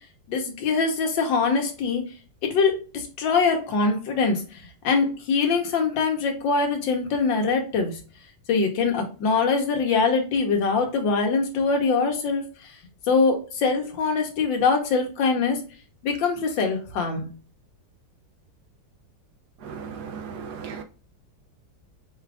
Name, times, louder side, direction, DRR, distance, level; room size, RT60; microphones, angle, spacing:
voice 1, 0.3-2.1 2.4-8.0 8.5-12.5 13.1-15.6 16.0-17.3, left 4 dB, 85° left, 1.7 m, -23 dB
voice 2, 19.6-20.8, right 6 dB, 70° right, 1.1 m, -36 dB
5.5 x 2.5 x 3.4 m
omnidirectional pair, 2.0 m